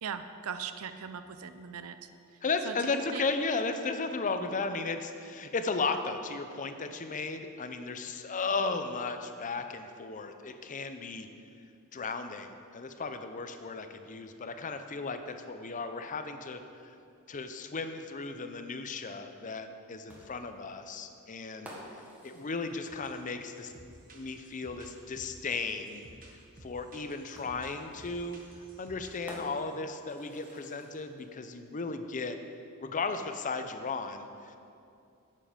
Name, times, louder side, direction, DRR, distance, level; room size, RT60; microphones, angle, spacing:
voice 1, 0.0-2.1 2.6-3.3, right 7 dB, 70° right, 10 dB, 0.5 m, -39 dB
voice 2, 2.4-11.3 11.9-16.9 17.3-21.7 22.2-23.7 24.1-26.0 26.6-28.4 28.8-32.4 32.8-34.6, left 4 dB, 35° left, 8 dB, 0.6 m, -35 dB
sound 1, 20.1-23.7 25.2-25.3 27.3-31.3, equal, 5° right, 1.5 m, -51 dB
sound 2, 22.9-23.2 23.5-29.7 30.1-30.2 30.4-30.6, right 1 dB, 40° right, 1.3 m, -54 dB
11.0 x 7.6 x 5.0 m, 2.5 s
head